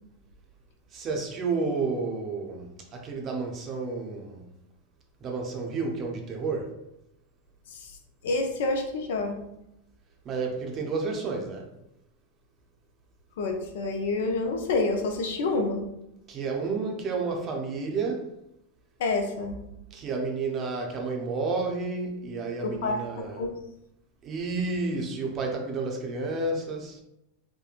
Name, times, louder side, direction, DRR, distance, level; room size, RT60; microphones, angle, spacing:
voice 1, 0.9-4.4 5.2-6.8 10.2-11.7 16.3-18.3 19.9-23.5 24.2-27.0, right 3 dB, 35° right, 0.6 m, -31 dB
voice 2, 8.2-9.4 13.4-15.9 19.0-19.6 22.6-23.5, left 3 dB, 75° left, 0.5 m, -28 dB
2.8 x 2.1 x 2.4 m
supercardioid pair, 125°, 0 cm